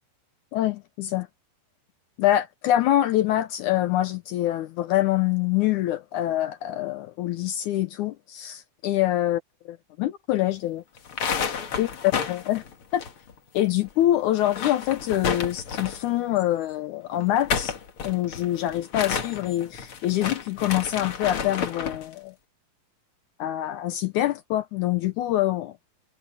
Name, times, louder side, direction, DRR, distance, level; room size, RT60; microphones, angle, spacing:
voice 1, 0.5-1.3 2.2-10.8 11.8-11.9 12.3-12.6 12.9-13.0 13.5-17.7 18.0-22.3 23.4-25.7, left 13 dB, 85° left, 1.7 m, -25 dB
sound 1, 11.0-13.6 13.9-14.0 14.3-16.1 17.2-22.1, left 6 dB, 45° left, 2.0 m, -31 dB
omnidirectional pair, 4.4 m